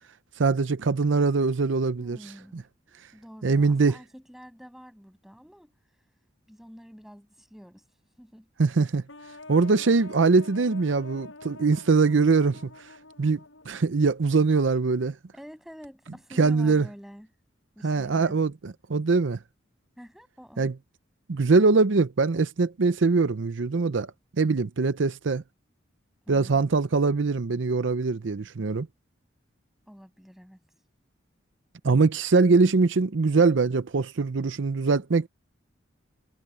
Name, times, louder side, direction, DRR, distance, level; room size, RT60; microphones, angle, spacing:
voice 1, 0.4-2.2 2.5-2.6 3.4-4.0 8.6-9.0 9.5-12.9 13.2-13.4 13.7-15.2 16.4-16.9 17.8-19.4 20.6-20.7 21.3-24.1 24.4-25.4 26.3-28.9 31.8-35.3, right 4 dB, 75° right, 0.6 m, -22 dB
voice 2, 2.0-5.7 6.5-7.8 8.2-8.5 15.3-17.3 17.8-18.4 20.0-20.7 26.2-26.8 29.9-30.6, equal, ahead, 7.4 m, -48 dB
sound 1, 9.1-13.9, left 2 dB, 80° left, 7.6 m, -47 dB
head